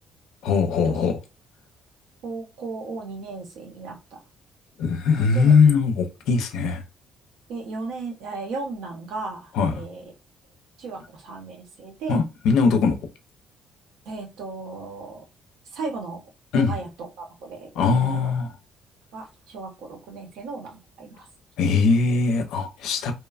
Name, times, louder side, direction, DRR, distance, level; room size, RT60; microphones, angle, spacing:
voice 1, 0.4-1.2 4.8-6.8 9.5-9.8 12.1-13.0 16.5-16.8 17.8-18.5 21.6-23.1, left 5 dB, 85° left, 0.5 m, -20 dB
voice 2, 2.2-4.2 5.2-5.6 7.5-10.1 10.8-12.2 14.0-15.3 15.7-16.2 16.6-16.9 17.2-18.3 19.1-21.3, right 3 dB, 85° right, 0.8 m, -35 dB
2.9 x 2.1 x 2.4 m
cardioid pair, 120°, 0 cm